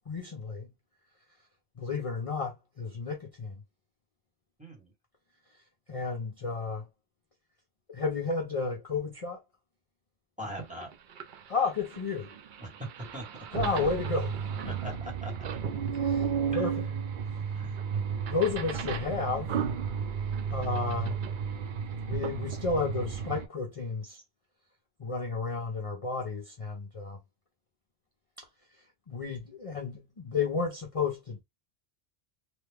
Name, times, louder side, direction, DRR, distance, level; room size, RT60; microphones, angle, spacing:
voice 1, 0.1-0.7 1.8-3.6 5.9-6.9 7.9-9.4 11.5-12.3 13.5-14.4 14.6-14.7 15.9-16.8 18.3-19.5 20.5-21.1 22.0-24.2 25.0-27.2 28.4-28.5 29.1-31.4, left 4 dB, 40° left, 0.7 m, -32 dB
voice 2, 4.6-4.9 10.4-10.9 12.6-13.2 14.6-15.3 16.5-16.7 17.4-17.7, right 1 dB, 5° right, 1.1 m, -41 dB
sound 1, 10.5-10.6 10.8-23.5, right 6 dB, 60° right, 0.6 m, -33 dB
3.1 x 2.2 x 3.4 m
omnidirectional pair, 1.1 m